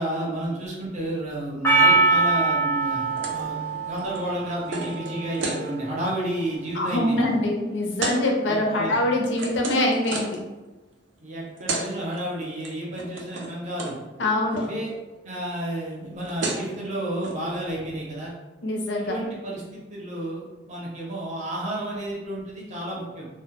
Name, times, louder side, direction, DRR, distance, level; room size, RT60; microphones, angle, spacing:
voice 1, 0.0-7.3 8.7-9.0 11.2-14.0 14.6-14.9 15.2-18.3 19.0-23.3, right 1 dB, 40° right, -5 dB, 0.6 m, -31 dB
Percussion, 1.6-6.1, right 3 dB, 15° left, 0.3 m, -23 dB
sound 1, 3.2-3.5 3.7-5.6 6.1-6.3 6.6-7.0 8.0-8.2 8.8-10.4 11.3-11.4 11.6-11.9 12.1-12.7 12.9-13.5 13.8-13.9 14.2-14.7 15.9-16.0 16.2-16.7 17.2-17.3, right 2 dB, 80° right, 0.5 m, -32 dB
voice 2, 6.7-10.4 14.2-14.6 18.6-19.1, left 1 dB, 70° left, 0 dB, 0.5 m, -24 dB
2.1 x 2.1 x 2.9 m, 1.1 s
head